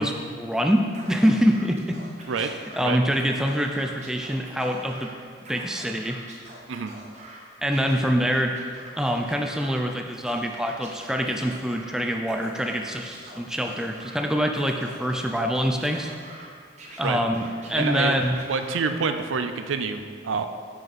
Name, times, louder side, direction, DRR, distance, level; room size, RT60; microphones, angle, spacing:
voice 1, 0.0-2.0 2.4-5.1 5.5-6.2 7.6-8.6 9.0-16.1 17.0-18.4, equal, 5° right, 2 dB, 0.4 m, -25 dB
Scratching (performance technique), 0.9-2.8 3.1-5.1 5.4-7.4 7.7-9.9 10.3-11.9 12.2-14.2 14.5-16.5 16.8-19.0, right 2 dB, 35° right, 1.1 m, -45 dB
voice 2, 17.7-18.2 18.5-20.4, right 5 dB, 85° right, 8 dB, 0.5 m, -27 dB
6.7 x 6.4 x 4.2 m, 2.1 s
head